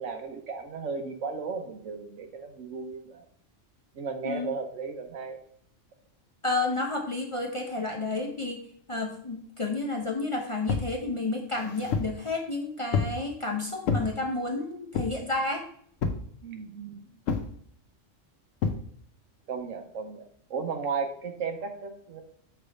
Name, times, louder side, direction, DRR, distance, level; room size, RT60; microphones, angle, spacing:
voice 1, 0.0-3.3 3.9-5.4 16.4-17.0 19.5-22.2, right 5 dB, 80° right, 6 dB, 1.2 m, -35 dB
voice 2, 6.4-8.6 8.9-15.6, left 2 dB, 35° left, 1 dB, 0.6 m, -31 dB
sound 1, 10.7-10.9 11.5-12.2 12.9-13.2 13.8-14.1 14.9-15.3 16.0-16.3 17.3-17.5 18.6-18.8, left 5 dB, 85° left, 1.1 m, -28 dB
6.0 x 3.3 x 4.9 m, 0.62 s
omnidirectional pair, 1.3 m